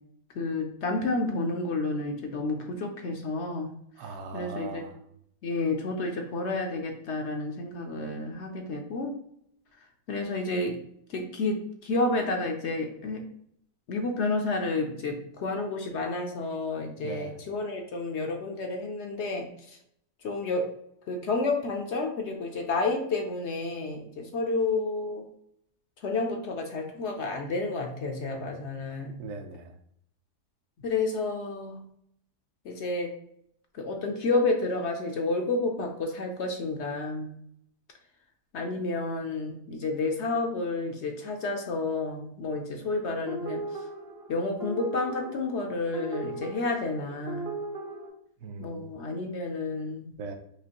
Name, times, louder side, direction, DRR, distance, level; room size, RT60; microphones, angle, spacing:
voice 1, 0.3-3.7 4.3-4.8 5.4-9.2 10.1-10.8 11.1-13.2 13.9-19.8 20.2-20.7 21.1-25.2 26.0-29.1 30.8-31.8 32.6-33.1 33.7-37.3 38.5-43.8 44.3-47.5 48.6-50.2, left 3 dB, 65° left, 3 dB, 0.7 m, -30 dB
voice 2, 4.0-5.0 17.0-17.4 29.2-29.7 48.4-48.9 50.2-50.4, right 4 dB, 70° right, 5 dB, 1.0 m, -39 dB
sound 1, 43.3-48.1, right 3 dB, 50° right, 0.8 m, -38 dB
4.9 x 3.0 x 2.9 m, 0.70 s
omnidirectional pair, 1.6 m